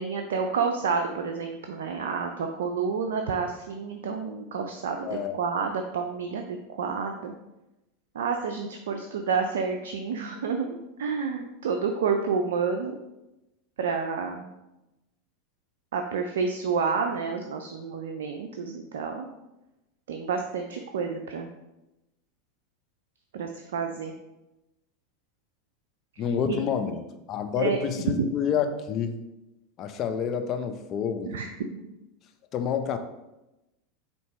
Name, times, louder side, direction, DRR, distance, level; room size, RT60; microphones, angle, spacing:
voice 1, 0.0-7.3 8.1-13.0 13.8-14.5 15.9-19.3 20.1-21.5 23.3-24.1 26.2-26.6 27.6-27.8 28.2-28.3 31.3-31.5, right 5 dB, 80° right, 4 dB, 0.4 m, -29 dB
voice 2, 5.0-5.4 26.2-29.2 29.8-31.3 32.5-33.0, left 7 dB, 45° left, 8 dB, 0.5 m, -28 dB
4.5 x 2.8 x 4.2 m, 0.96 s
hypercardioid pair, 100°, 0 cm